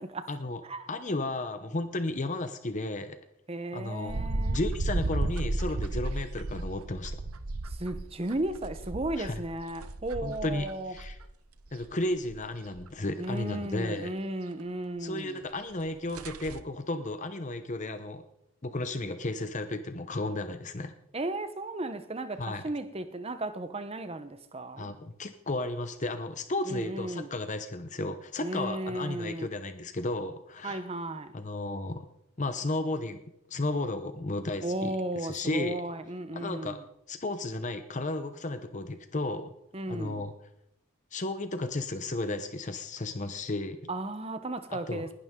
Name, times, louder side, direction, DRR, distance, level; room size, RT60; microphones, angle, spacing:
voice 1, 0.3-0.6 0.9-3.2 3.7-4.2 4.5-7.2 9.2-9.4 10.2-11.2 11.7-14.1 15.0-18.2 18.6-20.9 22.4-22.6 24.8-30.8 31.3-32.1 32.4-33.2 33.5-34.9 35.2-35.8 36.3-36.8 37.1-39.5 39.9-40.3 41.1-43.8 44.7-45.0, left 2 dB, 35° left, 0.8 m, -33 dB
voice 2, 3.5-4.7 7.6-10.9 13.2-15.4 21.1-24.9 26.6-27.3 28.4-29.5 30.6-31.4 34.6-36.8 39.7-40.3 43.9-45.1, right 2 dB, 25° right, 0.9 m, -35 dB
sound 1, 4.1-11.2 11.6-12.5 12.7-12.9 13.2-13.3 15.4-15.5 15.8-15.9 16.1-16.6, right 2 dB, 85° right, 0.9 m, -34 dB
20.0 x 11.5 x 3.7 m
head